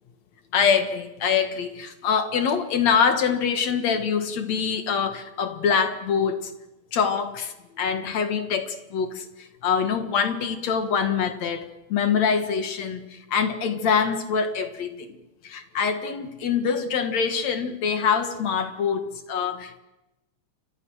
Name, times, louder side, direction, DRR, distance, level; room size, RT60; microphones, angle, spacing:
voice 1, 0.5-6.5 6.9-15.2 15.4-19.8, left 6 dB, 55° left, 9 dB, 2.7 m, -25 dB
29.0 x 24.5 x 6.5 m, 0.96 s
omnidirectional pair, 3.9 m